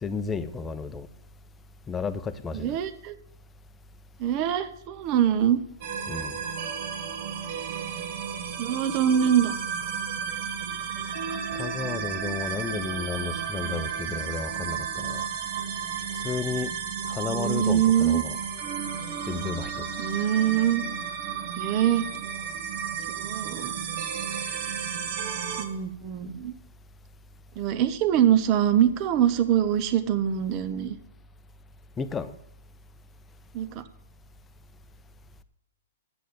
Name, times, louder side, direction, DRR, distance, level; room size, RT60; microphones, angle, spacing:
voice 1, 0.0-1.1 1.9-2.8 6.1-6.3 11.6-15.3 16.2-16.7 17.1-18.4 19.3-19.9 32.0-32.3, left 5 dB, 15° left, 11 dB, 0.7 m, -32 dB
voice 2, 2.5-3.1 4.2-5.6 8.6-9.5 17.3-18.2 20.0-20.8 21.6-22.0 23.1-23.7 25.6-26.6 27.6-31.0 33.5-33.8, right 10 dB, 40° right, 11 dB, 1.1 m, -24 dB
sound 1, 5.8-25.7, right 7 dB, 55° right, 1.7 m, -33 dB
8.3 x 7.9 x 7.9 m, 0.73 s
hypercardioid pair, 130°, 0 cm